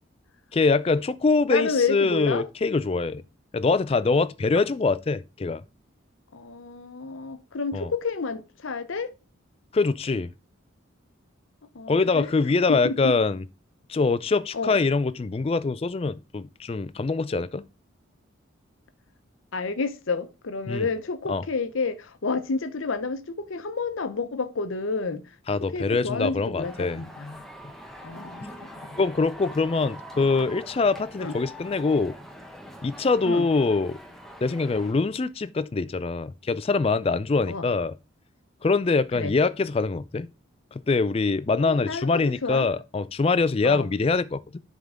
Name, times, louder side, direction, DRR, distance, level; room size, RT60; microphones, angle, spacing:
voice 1, 0.5-3.2 3.5-5.6 7.7-7.9 9.7-10.3 11.9-13.4 13.9-17.6 20.7-20.9 21.3-21.4 25.5-27.0 29.0-32.2 32.8-34.0 34.4-38.0 38.6-40.3 40.7-44.6, left 4 dB, 30° left, 0.3 m, -24 dB
voice 2, 1.5-2.4 6.3-9.1 11.7-12.3 12.7-13.1 14.5-14.8 19.5-25.2 25.7-27.4 28.0-28.4 31.2-31.4 33.2-33.5 37.5-37.7 39.1-39.3 41.6-42.7 43.6-43.9, left 4 dB, 75° left, 0.8 m, -30 dB
sound 1, 26.6-34.9, equal, ahead, 0.8 m, -43 dB
7.6 x 3.6 x 5.0 m
head